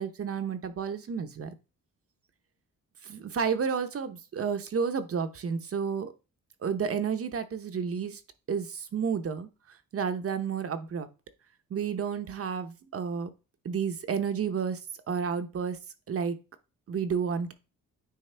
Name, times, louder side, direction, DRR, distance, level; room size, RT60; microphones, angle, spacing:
voice 1, 0.0-1.5 3.1-6.1 6.6-8.2 8.5-9.5 9.9-11.1 11.7-13.3 13.6-14.8 15.1-15.8 16.1-16.4 16.9-17.5, right 6 dB, 45° right, 9 dB, 0.8 m, -31 dB
9.4 x 3.4 x 3.3 m, 0.31 s
cardioid pair, 105°, 32 cm